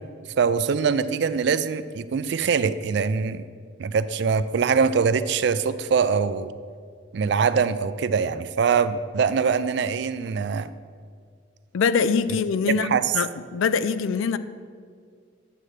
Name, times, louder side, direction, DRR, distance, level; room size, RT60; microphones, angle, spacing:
voice 1, 0.4-3.5 3.8-6.5 7.1-10.7 12.8-13.2, right 6 dB, 55° right, 13 dB, 0.3 m, -23 dB
voice 2, 11.7-14.4, left 5 dB, 75° left, 13 dB, 0.4 m, -23 dB
10.5 x 7.6 x 3.2 m, 2.1 s
head